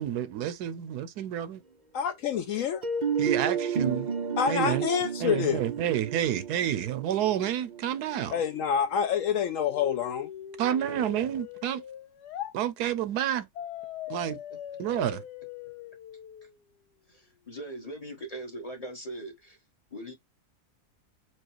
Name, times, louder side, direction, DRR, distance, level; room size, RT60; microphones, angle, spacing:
voice 1, 0.0-1.6 3.2-4.1 4.5-4.9 5.2-8.3 10.6-11.8 12.5-13.5 14.1-14.4 14.8-15.2, right 10 dB, 80° right, 1.2 m, -29 dB
voice 2, 1.9-2.8 4.4-5.6 8.3-10.3, left 8 dB, 70° left, 0.8 m, -27 dB
sound 1, 2.8-8.6, right 6 dB, 60° right, 0.4 m, -32 dB
sound 2, 9.7-12.5 13.5-16.6, left 10 dB, 90° left, 1.3 m, -41 dB
voice 3, 17.1-19.6 19.9-20.1, right 1 dB, 25° left, 1.0 m, -40 dB
4.7 x 2.3 x 4.5 m
omnidirectional pair, 1.7 m